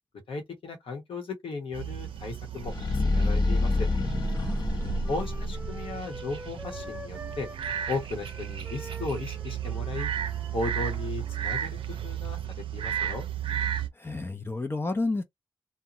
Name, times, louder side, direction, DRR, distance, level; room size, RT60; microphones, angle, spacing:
voice 1, 0.3-3.9 5.1-7.5 7.9-10.1 10.5-13.3, left 3 dB, 85° left, 1.0 m, -36 dB
sound 1, 1.7-13.9, right 10 dB, 85° right, 0.5 m, -34 dB
sound 2, 2.6-5.9, left 2 dB, 55° left, 0.9 m, -27 dB
Wind instrument woodwind instrument, 3.5-11.6, equal, 15° right, 0.8 m, -47 dB
voice 2, 4.3-5.1 13.9-15.2, left 2 dB, 25° left, 0.5 m, -32 dB
2.6 x 2.1 x 2.9 m
cardioid pair, 55°, 9 cm